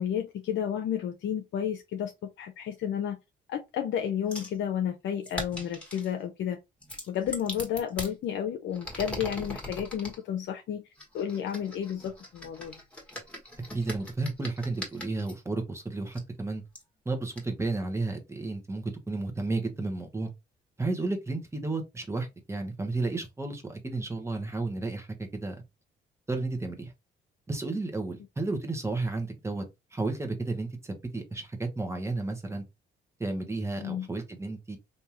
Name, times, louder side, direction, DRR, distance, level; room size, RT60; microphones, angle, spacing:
voice 1, 0.0-2.1 2.4-3.2 3.5-6.6 7.1-10.8 11.1-12.8 33.8-34.1, left 9 dB, 70° left, 0.6 m, -31 dB
sound 1, 4.3-4.6 5.2-6.1 6.8-8.1 8.7-10.2 11.0-15.3 16.1-16.2 16.8-16.9 17.4-17.5, left 1 dB, 5° left, 1.5 m, -40 dB
voice 2, 13.7-16.6 17.0-20.3 20.8-25.6 26.3-26.9 27.5-29.6 29.9-32.6 33.2-34.8, right 3 dB, 15° right, 1.1 m, -32 dB
3.5 x 2.7 x 2.9 m
cardioid pair, 90°, 20 cm